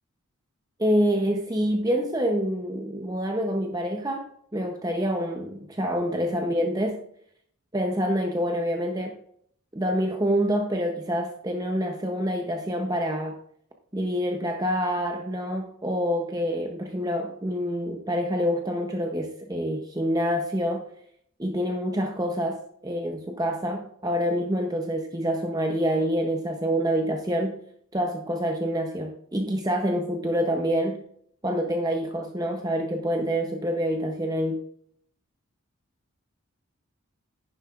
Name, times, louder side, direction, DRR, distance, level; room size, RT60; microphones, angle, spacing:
voice 1, 0.8-4.3 4.5-7.0 7.7-9.2 9.7-13.3 13.9-20.8 21.4-27.6 27.9-31.0 31.4-34.6, equal, 15° right, 3 dB, 0.7 m, -27 dB
10.5 x 10.5 x 2.4 m, 0.66 s
head